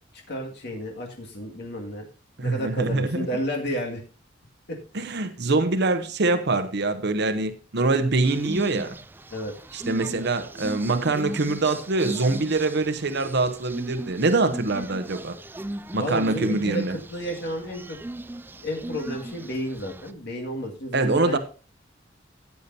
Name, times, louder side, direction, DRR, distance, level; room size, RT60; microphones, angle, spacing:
voice 1, 0.3-2.0 2.4-4.0 4.7-4.8 9.3-9.5 16.0-18.0 18.6-21.4, equal, 60° left, 2.2 m, -31 dB
voice 2, 2.4-3.3 4.9-9.0 9.7-15.4 15.9-17.0 20.9-21.4, right 3 dB, 60° right, 0.9 m, -24 dB
sound 1, 8.2-20.1, right 1 dB, 10° right, 0.4 m, -38 dB
15.0 x 8.3 x 2.8 m
head